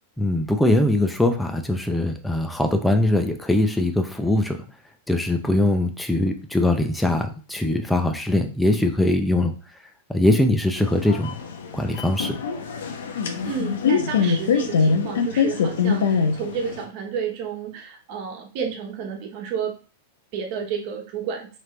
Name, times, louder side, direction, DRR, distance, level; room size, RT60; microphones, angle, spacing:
voice 1, 0.2-4.6 5.1-9.5 10.1-11.3 11.7-12.4, left 1 dB, 5° left, 4 dB, 0.5 m, -21 dB
sound 1, 10.8-16.8, left 5 dB, 85° left, 0.7 m, -24 dB
voice 2, 13.4-19.7 20.3-21.5, right 6 dB, 50° right, 2 dB, 1.1 m, -31 dB
3.7 x 3.3 x 3.3 m, 0.36 s
supercardioid pair, 140°, 0 cm